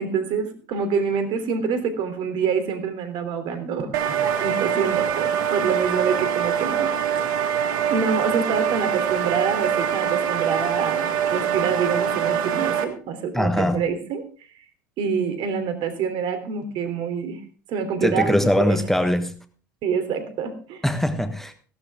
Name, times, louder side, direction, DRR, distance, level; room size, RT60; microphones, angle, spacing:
voice 1, 0.0-7.6 7.9-14.5 15.0-17.4 17.7-18.8 19.8-20.8, right 6 dB, 55° right, 9 dB, 3.1 m, -26 dB
sound 1, 3.9-12.8, right 8 dB, 70° right, 1.8 m, -24 dB
voice 2, 13.3-13.9 18.0-19.3 20.8-21.5, left 1 dB, 5° left, 9 dB, 1.3 m, -21 dB
16.5 x 12.0 x 3.6 m, 0.38 s
hypercardioid pair, 75°, 10 cm